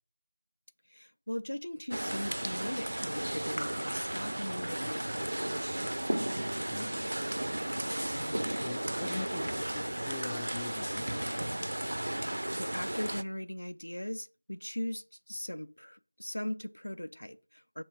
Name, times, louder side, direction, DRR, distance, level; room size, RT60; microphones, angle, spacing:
voice 1, 0.9-5.8 8.1-8.6 12.5-17.8, left 1 dB, 75° left, 0.5 m, -39 dB
sound 1, 1.9-13.2, right 1 dB, 65° right, 0.3 m, -34 dB
voice 2, 6.7-7.7 8.5-11.2, left 3 dB, 10° left, 0.4 m, -43 dB
7.3 x 3.1 x 4.6 m
figure-of-eight pair, 170°, 0 cm